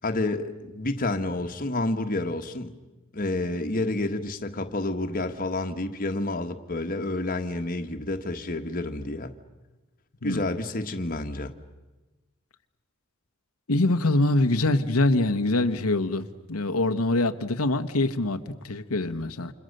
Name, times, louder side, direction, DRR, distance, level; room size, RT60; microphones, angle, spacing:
voice 1, 0.0-2.7 3.1-9.3 10.2-11.5, left 2 dB, 40° left, 6 dB, 1.4 m, -29 dB
voice 2, 13.7-19.5, left 2 dB, 90° left, 7 dB, 1.2 m, -24 dB
29.5 x 27.5 x 6.7 m, 1.2 s
head